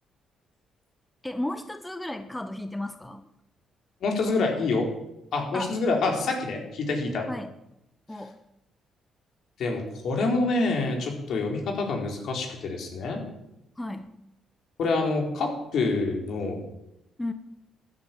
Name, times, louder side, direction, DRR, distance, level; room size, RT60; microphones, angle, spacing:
voice 1, 1.2-3.3 5.5-5.7 7.3-7.5 8.1-8.4 13.8-14.2 17.2-17.3, left 1 dB, 10° left, 8 dB, 1.1 m, -34 dB
voice 2, 4.0-4.8 5.3-7.3 9.6-13.2 14.8-16.7, left 3 dB, 70° left, 2 dB, 4.3 m, -27 dB
15.0 x 10.5 x 7.6 m, 0.87 s
cardioid pair, 90°, 0 cm